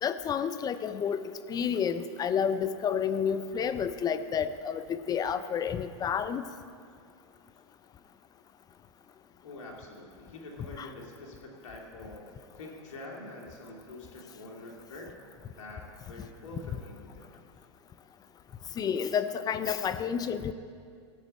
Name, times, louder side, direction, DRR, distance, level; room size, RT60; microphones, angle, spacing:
voice 1, 0.0-6.4 10.8-10.9 18.8-20.5, left 7 dB, 25° left, 12 dB, 0.5 m, -30 dB
voice 2, 9.4-12.3 12.6-15.2 15.6-17.2, left 2 dB, 75° left, 0 dB, 2.3 m, -45 dB
14.0 x 9.0 x 4.2 m, 2.3 s
hypercardioid pair, 110°, 16 cm